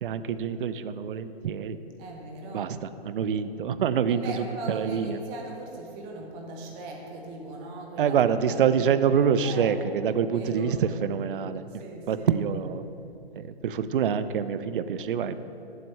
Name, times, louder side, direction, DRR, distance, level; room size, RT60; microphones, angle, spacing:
voice 1, 0.0-1.8 2.5-5.2 8.0-11.6 12.1-12.8 13.4-15.4, right 7 dB, 55° right, 12 dB, 0.4 m, -26 dB
voice 2, 2.0-2.7 4.1-8.9 9.4-9.8 10.3-10.8 11.7-12.3, right 2 dB, 15° right, 0 dB, 0.6 m, -39 dB
10.0 x 7.8 x 3.1 m, 2.9 s
hypercardioid pair, 140°, 32 cm